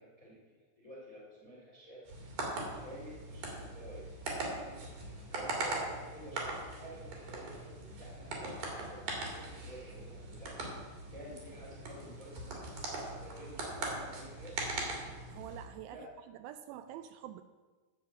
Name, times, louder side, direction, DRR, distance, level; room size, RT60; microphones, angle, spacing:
voice 1, 0.0-2.0 2.8-4.0 4.5-4.8 5.3-10.6 11.1-14.6 15.9-16.1, equal, 35° left, -4 dB, 1.3 m, -51 dB
sound 1, 2.1-15.6, right 2 dB, 50° right, 3.5 m, -41 dB
voice 2, 15.3-17.4, right 11 dB, 85° right, 10 dB, 2.8 m, -47 dB
13.0 x 5.7 x 7.5 m, 1.3 s
omnidirectional pair, 5.6 m